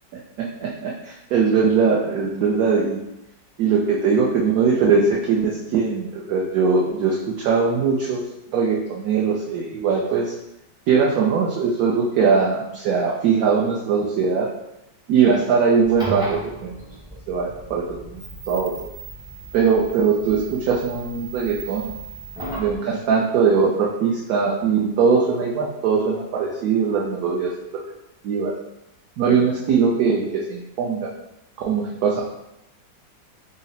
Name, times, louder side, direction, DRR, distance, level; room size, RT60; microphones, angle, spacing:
voice 1, 0.4-3.0 3.6-8.2 8.5-10.3 10.9-14.5 15.1-16.8 17.3-18.7 19.5-21.9 22.6-27.5 28.2-28.5 29.2-31.1 31.7-32.2, right 5 dB, 70° right, -3 dB, 0.9 m, -21 dB
sound 1, 15.8-22.8, right 2 dB, 5° right, 0.3 m, -36 dB
3.8 x 2.0 x 4.0 m, 0.89 s
omnidirectional pair, 2.0 m